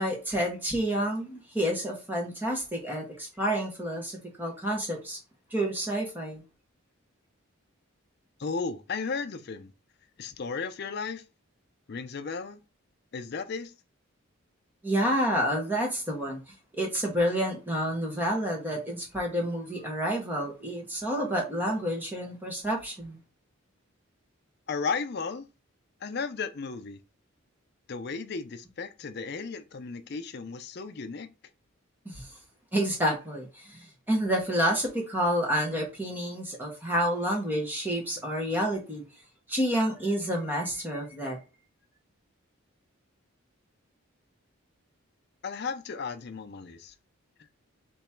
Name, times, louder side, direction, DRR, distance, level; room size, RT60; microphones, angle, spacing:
voice 1, 0.0-5.2 5.5-6.4 14.8-16.4 16.7-23.2 32.0-32.3 32.7-33.8 34.1-39.0 39.5-41.4, equal, 10° right, 1.3 m, -29 dB
voice 2, 8.4-9.7 10.2-11.2 11.9-12.6 13.1-13.7 24.7-25.5 26.0-27.0 27.9-31.3 45.4-46.9, left 4 dB, 50° left, 0.5 m, -34 dB
3.5 x 3.0 x 4.3 m
head